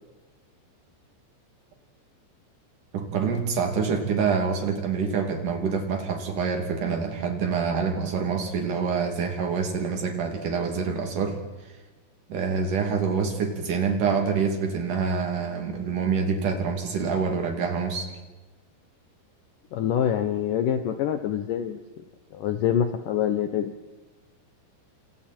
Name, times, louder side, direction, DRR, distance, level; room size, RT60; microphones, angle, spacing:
voice 1, 2.9-11.7 12.3-18.1, right 5 dB, 50° right, 3 dB, 4.0 m, -26 dB
voice 2, 19.7-21.8 22.3-23.7, left 9 dB, 85° left, 7 dB, 1.9 m, -25 dB
29.0 x 27.5 x 4.5 m, 1.2 s
omnidirectional pair, 5.3 m